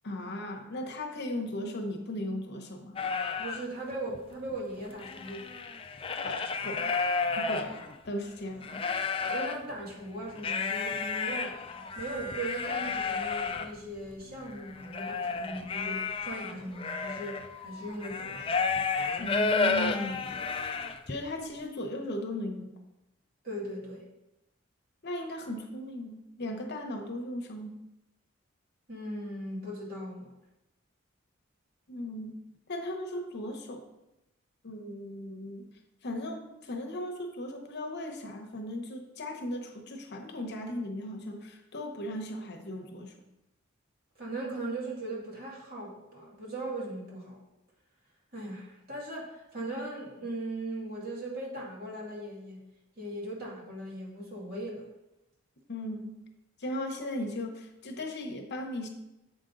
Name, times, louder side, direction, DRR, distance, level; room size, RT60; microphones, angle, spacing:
voice 1, 0.0-3.0 6.2-7.0 7.4-7.8 8.0-8.9 19.2-20.4 21.1-22.7 25.0-27.7 31.9-32.4 32.7-33.9 34.6-35.7 36.0-43.1 55.7-56.1 56.6-58.9, left 1 dB, 55° left, 3 dB, 1.0 m, -37 dB
sound 1, 3.0-3.6 4.1-4.2 4.5-8.1 8.6-9.6 10.4-21.2, left 4 dB, 25° left, 0.4 m, -32 dB
voice 2, 3.4-5.6 8.2-8.3 9.2-11.6 12.0-18.6 23.4-24.1 28.9-30.3 44.2-47.4 48.3-52.6 53.0-54.9, right 1 dB, 50° right, -4 dB, 2.1 m, -39 dB
7.4 x 5.1 x 3.9 m, 0.93 s
head